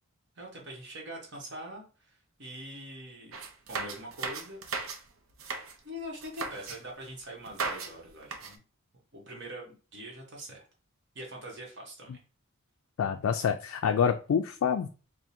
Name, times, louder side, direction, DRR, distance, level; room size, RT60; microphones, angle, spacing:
voice 1, 0.4-3.4 3.7-4.6 5.8-8.6 9.1-10.7 11.1-12.2, equal, 55° right, -1 dB, 1.2 m, -43 dB
sound 1, 3.3-5.0 5.3-5.7 6.2-6.8 7.5-7.9 8.2-8.6, right 4 dB, 75° right, 0.7 m, -36 dB
voice 2, 13.0-14.9, left 7 dB, 85° left, 5 dB, 0.3 m, -27 dB
3.6 x 2.2 x 4.3 m, 0.35 s
head